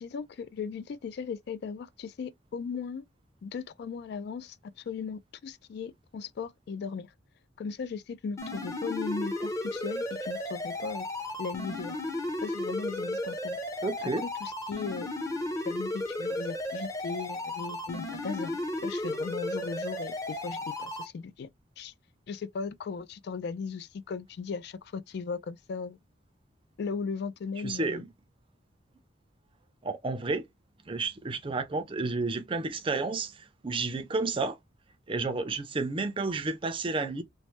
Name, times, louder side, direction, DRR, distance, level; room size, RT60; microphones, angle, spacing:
voice 1, 0.0-3.1 3.4-7.1 7.6-11.1 11.4-12.0 12.4-13.6 14.0-15.1 15.7-21.5 21.8-21.9 22.3-26.0 26.8-28.0, left 5 dB, 60° left, 0.3 m, -37 dB
sound 1, 8.4-21.1, left 1 dB, 15° left, 0.6 m, -34 dB
voice 2, 13.8-14.2 27.6-28.1 29.8-30.4 30.9-33.3 33.6-34.6 35.1-37.2, right 3 dB, 25° right, 0.4 m, -31 dB
3.1 x 2.1 x 3.0 m
head